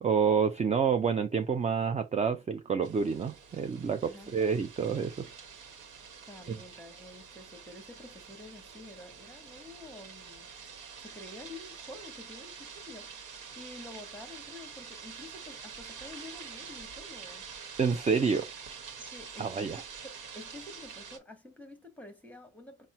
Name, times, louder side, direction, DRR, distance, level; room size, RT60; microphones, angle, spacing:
voice 1, 0.0-5.3 6.5-6.6 17.8-18.5 19.4-19.8, right 6 dB, 25° right, 0.4 m, -28 dB
sound 1, 2.8-21.2, right 6 dB, 80° right, 1.1 m, -47 dB
voice 2, 4.0-4.3 6.3-10.5 11.0-17.5 19.0-22.9, left 2 dB, 5° left, 1.1 m, -49 dB
4.2 x 2.1 x 4.3 m
cardioid pair, 90°, 30 cm